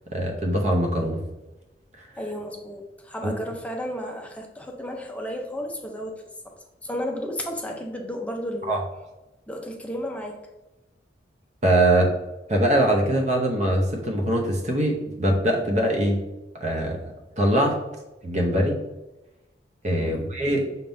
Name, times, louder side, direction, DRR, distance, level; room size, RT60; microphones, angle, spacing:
voice 1, 0.1-1.2 3.2-3.3 8.7-8.8 11.6-12.1 12.5-16.2 16.6-17.0 17.4-17.8 18.2-18.8 19.8-20.6, right 1 dB, 40° right, 1 dB, 0.7 m, -22 dB
voice 2, 2.2-6.6 6.8-8.8 9.5-10.4 20.0-20.3, equal, 10° left, 2 dB, 0.5 m, -33 dB
5.7 x 3.5 x 2.6 m, 1.0 s
head